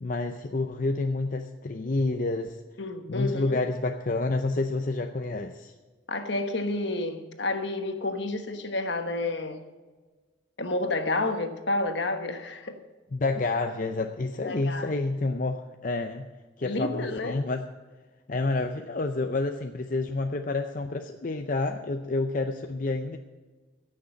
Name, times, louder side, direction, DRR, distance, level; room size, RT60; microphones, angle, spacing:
voice 1, 0.0-2.6 3.1-5.7 13.1-16.3 16.6-17.7 18.3-23.2, left 3 dB, 45° left, 5 dB, 0.6 m, -29 dB
voice 2, 2.8-3.6 6.1-9.6 10.6-12.8 14.5-14.9 16.6-17.4, left 2 dB, 65° left, 7 dB, 1.3 m, -30 dB
15.5 x 6.5 x 7.8 m, 1.3 s
head